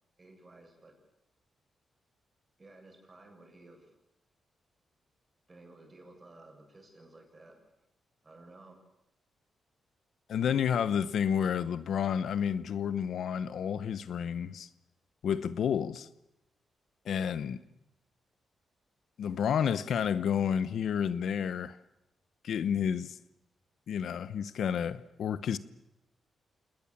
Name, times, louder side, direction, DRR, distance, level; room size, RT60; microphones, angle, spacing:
voice 1, 0.2-0.9 2.6-3.9 5.5-7.5 8.2-8.8, right 2 dB, 30° right, 7.7 m, -54 dB
voice 2, 10.3-14.7 15.2-16.1 17.0-17.6 19.2-21.8 22.4-23.2 23.9-25.6, left 8 dB, 75° left, 1.0 m, -30 dB
27.5 x 19.5 x 7.4 m
cardioid pair, 90°, 0 cm